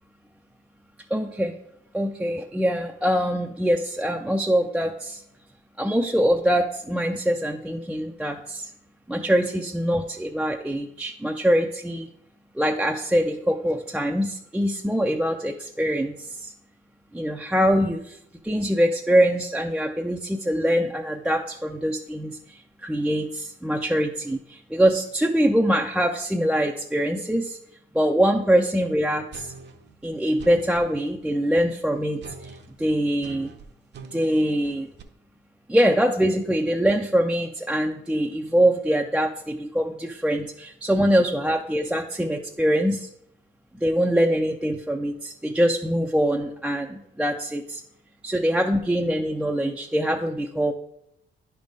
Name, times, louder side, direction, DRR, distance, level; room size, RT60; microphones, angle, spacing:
voice 1, 1.1-1.5 1.9-5.2 5.8-8.7 9.1-12.1 12.6-16.5 17.1-18.2 18.4-27.6 27.9-29.5 30.0-32.5 32.8-33.5 34.1-34.9 35.7-43.1 43.7-47.8 48.2-50.7, equal, 5° right, 2 dB, 0.4 m, -23 dB
sound 1, 29.3-30.9 32.2-35.0, right 6 dB, 60° right, 0.8 m, -43 dB
9.9 x 3.5 x 5.1 m, 0.77 s
cardioid pair, 90°, 20 cm